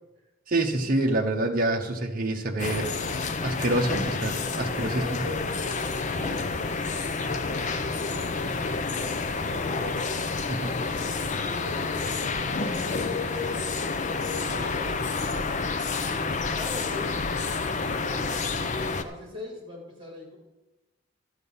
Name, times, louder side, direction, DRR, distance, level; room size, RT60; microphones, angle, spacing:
voice 1, 0.5-3.1 3.4-5.3 10.5-10.7, right 2 dB, 40° right, 1 dB, 1.0 m, -27 dB
sound 1, 2.6-19.0, left 4 dB, 35° left, 0.6 m, -29 dB
voice 2, 4.7-5.5 5.8-6.5 7.0-10.0 10.6-12.4 12.7-15.2 16.0-17.5 17.9-18.5 19.0-20.4, left 2 dB, 25° right, -1 dB, 3.5 m, -41 dB
12.0 x 8.2 x 5.5 m, 1.0 s
head